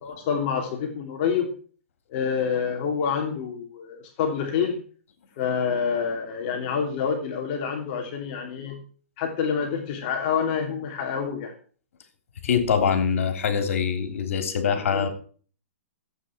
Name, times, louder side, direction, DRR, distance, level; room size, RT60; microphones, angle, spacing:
voice 1, 0.0-1.5 2.1-4.8 5.4-8.8 9.2-11.5 14.9-15.1, left 6 dB, 40° left, 3 dB, 3.0 m, -27 dB
voice 2, 12.4-15.1, left 6 dB, 70° left, 8 dB, 3.2 m, -24 dB
14.5 x 8.6 x 4.5 m, 0.42 s
hypercardioid pair, 155°, 8 cm